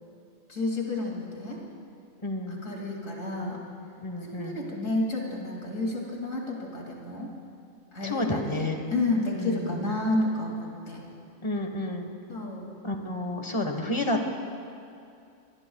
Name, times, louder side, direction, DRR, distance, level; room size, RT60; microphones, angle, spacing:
voice 1, 0.5-1.6 2.5-3.6 4.2-7.3 7.9-11.0 12.3-12.7, left 2 dB, 70° left, -2 dB, 2.9 m, -30 dB
voice 2, 2.2-2.7 4.0-4.6 8.0-8.8 9.4-9.8 11.4-12.1 12.8-14.3, left 1 dB, 25° left, 4 dB, 1.2 m, -30 dB
24.5 x 20.5 x 2.3 m, 2.5 s
omnidirectional pair, 1.4 m